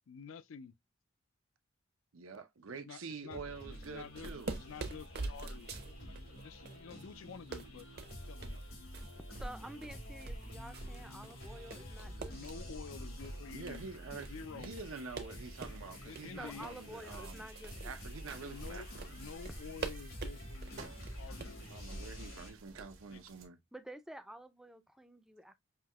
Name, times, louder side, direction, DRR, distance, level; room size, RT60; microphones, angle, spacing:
voice 1, 0.1-0.7 2.8-3.4 3.9-7.9 8.3-8.6 12.2-13.8 14.3-14.7 16.0-16.7 18.4-21.9 23.1-23.2, left 6 dB, 75° left, 0.4 m, -50 dB
voice 2, 2.1-4.5 11.5-11.8 13.5-17.5 17.8-19.1 21.7-23.6, right 4 dB, 90° right, 0.7 m, -47 dB
sound 1, 3.3-22.5, equal, 90° left, 2.7 m, -49 dB
sound 2, 3.7-22.8, right 3 dB, 50° right, 0.7 m, -47 dB
voice 3, 9.3-12.7 16.4-18.0 23.7-25.5, right 1 dB, 5° right, 0.4 m, -50 dB
sound 3, 15.3-23.5, right 3 dB, 75° right, 1.0 m, -57 dB
5.7 x 2.8 x 2.2 m
head